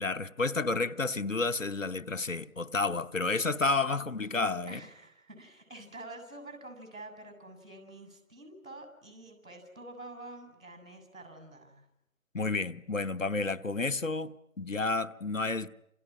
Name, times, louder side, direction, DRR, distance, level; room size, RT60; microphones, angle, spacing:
voice 1, 0.0-4.8 12.3-15.7, left 3 dB, 65° left, 1.1 m, -31 dB
voice 2, 4.7-11.9, right 2 dB, 70° right, 7.9 m, -48 dB
29.5 x 27.0 x 6.1 m
figure-of-eight pair, 165°, 41 cm